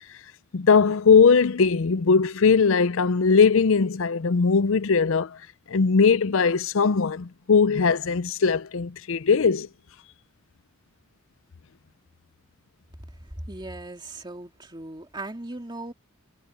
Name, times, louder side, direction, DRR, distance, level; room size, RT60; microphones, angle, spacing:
voice 1, 0.5-5.4 5.7-9.7, left 5 dB, 65° left, 0.5 m, -20 dB
voice 2, 13.2-15.9, right 2 dB, 20° right, 2.3 m, -38 dB
head